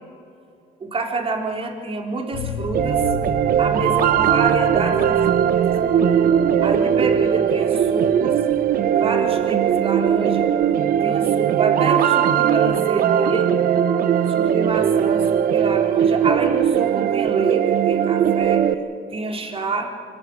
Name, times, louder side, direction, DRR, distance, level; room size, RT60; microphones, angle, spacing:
voice 1, 0.8-3.1 3.6-5.7 6.6-8.4 8.9-10.5 11.0-13.5 14.3-18.6 19.1-19.9, right 3 dB, 35° right, 3 dB, 3.6 m, -27 dB
sound 1, 2.3-11.9 12.2-12.3 12.6-12.7, left 4 dB, 90° left, 1.6 m, -36 dB
sound 2, 2.7-18.7, right 9 dB, 60° right, 1.0 m, -19 dB
25.5 x 14.0 x 9.7 m, 2.4 s
cardioid pair, 110°, 17 cm